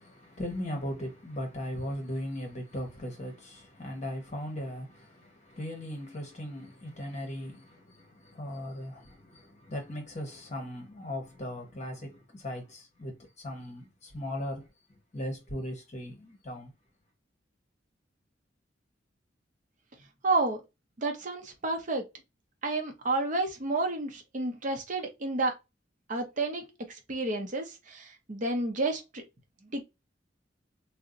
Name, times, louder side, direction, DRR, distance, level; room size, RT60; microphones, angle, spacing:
voice 1, 0.0-14.7 15.1-16.7, left 1 dB, 40° left, 0.9 m, -38 dB
voice 2, 20.2-20.6 21.0-22.1 22.6-25.5 26.1-29.2 29.7-29.8, right 2 dB, 45° right, 0.6 m, -30 dB
2.5 x 2.1 x 3.7 m
head